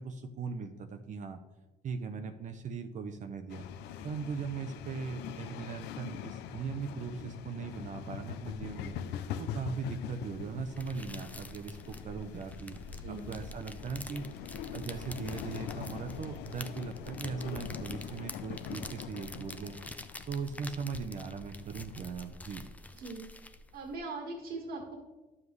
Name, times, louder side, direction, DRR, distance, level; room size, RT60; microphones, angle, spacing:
voice 1, 0.0-1.4 1.8-3.7 4.0-9.0 9.4-12.8 13.1-14.3 14.7-19.8 20.3-22.6, right 5 dB, 45° right, 6 dB, 0.7 m, -39 dB
sound 1, 3.5-22.7, left 8 dB, 85° left, 0.6 m, -43 dB
sound 2, 10.3-24.0, left 2 dB, 10° left, 0.5 m, -47 dB
voice 2, 12.9-13.3 22.9-23.2 23.7-25.0, right 3 dB, 75° right, 0 dB, 1.9 m, -40 dB
11.0 x 7.3 x 3.2 m, 1.1 s
cardioid pair, 110°, 17 cm